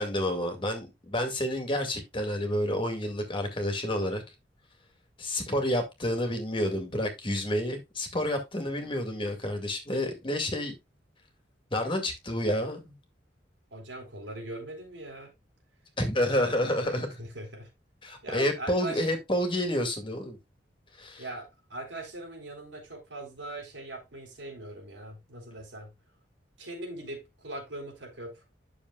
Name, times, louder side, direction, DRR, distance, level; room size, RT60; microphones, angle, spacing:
voice 1, 0.0-4.2 5.2-10.7 11.7-12.9 16.0-17.2 18.0-20.4 21.0-21.2, left 1 dB, 30° left, 2.0 m, -29 dB
voice 2, 13.7-15.3 17.2-17.7 18.2-19.0 21.2-25.9 26.6-28.4, right 2 dB, 80° right, 4.0 m, -41 dB
10.5 x 6.6 x 2.3 m
head